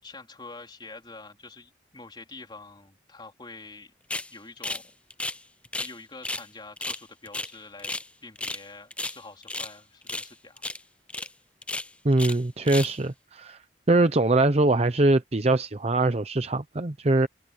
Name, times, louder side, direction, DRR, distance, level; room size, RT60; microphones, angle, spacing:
voice 1, 0.0-3.9 4.3-4.9 5.8-10.6, left 3 dB, 25° left, 4.0 m, -46 dB
sound 1, 4.1-4.3 4.6-5.9 6.2-6.5 6.8-8.1 8.4-8.6 8.9-9.7 10.1-10.3 10.6-10.8 11.1-11.3 11.6-12.4 12.6-13.0, left 2 dB, 5° left, 0.4 m, -33 dB
voice 2, 12.0-13.6 13.9-17.3, right 2 dB, 35° right, 0.7 m, -22 dB
head